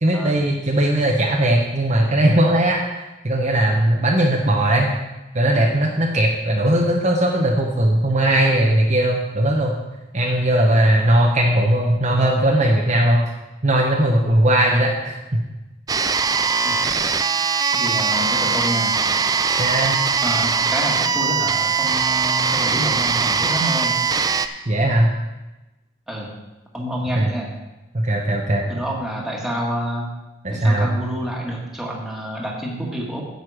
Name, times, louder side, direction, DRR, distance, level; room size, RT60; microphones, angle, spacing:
voice 1, 0.0-5.0 5.3-9.8 10.1-13.2 13.6-15.4 19.6-20.0 24.7-25.1 27.1-27.3 27.9-28.7 30.4-30.9, right 1 dB, 35° right, 0 dB, 0.9 m, -18 dB
sound 1, 15.9-24.5, right 5 dB, 20° right, 0.3 m, -21 dB
voice 2, 17.7-19.0 20.2-24.0 26.1-26.3 26.7-27.5 28.7-30.1 30.5-33.2, equal, ahead, -3 dB, 1.8 m, -28 dB
9.3 x 8.1 x 4.9 m, 1.0 s
head